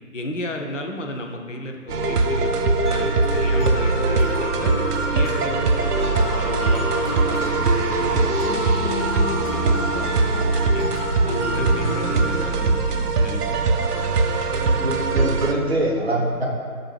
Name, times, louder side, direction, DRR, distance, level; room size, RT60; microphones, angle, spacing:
voice 1, 0.1-4.7 5.1-10.9 11.2-13.5, left 1 dB, 55° left, 3 dB, 0.5 m, -33 dB
sound 1, 1.9-15.5, right 3 dB, 85° right, 0.6 m, -22 dB
sound 2, 2.0-15.1, left 4 dB, 90° left, 0.7 m, -35 dB
Mallet percussion, 2.9-12.4, equal, ahead, 0.5 m, -29 dB
voice 2, 14.5-16.5, right 1 dB, 45° right, -3 dB, 0.7 m, -24 dB
6.1 x 2.5 x 3.2 m, 2.2 s
figure-of-eight pair, 160°, 45 cm